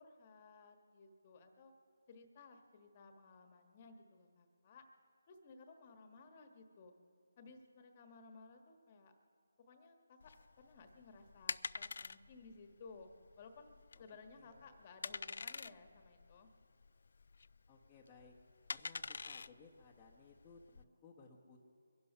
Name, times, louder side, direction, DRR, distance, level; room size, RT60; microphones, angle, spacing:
voice 1, 0.0-1.7 2.1-4.8 5.3-6.9 7.4-9.1 9.7-10.3 10.6-13.1 13.4-16.5, left 4 dB, 30° left, 6 dB, 1.3 m, -58 dB
sound 1, 10.2-20.8, left 4 dB, 60° left, 0.3 m, -47 dB
voice 2, 13.9-14.8 17.7-18.3 18.7-21.6, left 4 dB, 15° left, -5 dB, 1.0 m, -61 dB
23.0 x 11.0 x 5.6 m, 2.3 s
figure-of-eight pair, 165°, 0 cm